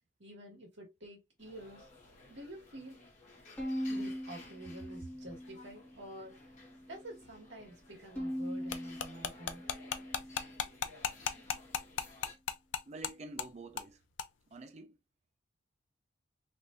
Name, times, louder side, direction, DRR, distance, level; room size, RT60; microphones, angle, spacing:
voice 1, 0.2-1.8 2.3-3.0 3.9-6.4 6.9-9.7 12.2-12.3, right 1 dB, 65° right, 1.7 m, -49 dB
sound 1, 1.4-12.4, left 2 dB, 40° left, 1.2 m, -57 dB
Bowed string instrument, 3.6-5.9 6.4-7.2 8.2-10.7, equal, 10° left, 1.2 m, -41 dB
sound 2, 8.7-13.1 13.4-13.5 13.8-13.9 14.2-14.3, left 7 dB, 70° left, 0.4 m, -35 dB
voice 2, 12.9-14.0 14.5-15.0, right 2 dB, 35° right, 0.4 m, -48 dB
3.4 x 2.6 x 2.5 m
head